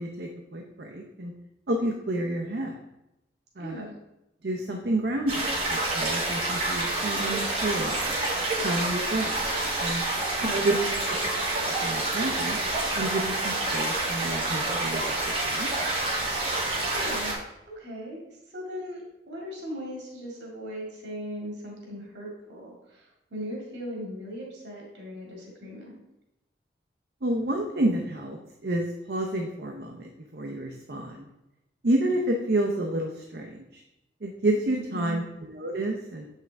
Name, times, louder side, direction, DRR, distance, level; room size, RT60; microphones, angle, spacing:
voice 1, 0.0-1.3 1.7-2.8 3.6-3.9 4.4-8.2 8.6-9.4 9.8-10.0 10.5-10.8 11.1-11.2 11.7-12.6 12.9-15.0 15.4-15.8 27.2-31.3 31.8-33.8 34.2-36.2, right 1 dB, 60° right, 2 dB, 0.7 m, -29 dB
voice 2, 3.6-3.9 10.4-11.1 16.9-17.4 17.8-18.2 18.5-25.9 34.7-35.3, equal, 80° right, -3 dB, 2.1 m, -38 dB
sound 1, 5.3-17.3, right 2 dB, 30° right, 1.9 m, -28 dB
7.6 x 5.7 x 3.4 m, 0.91 s
head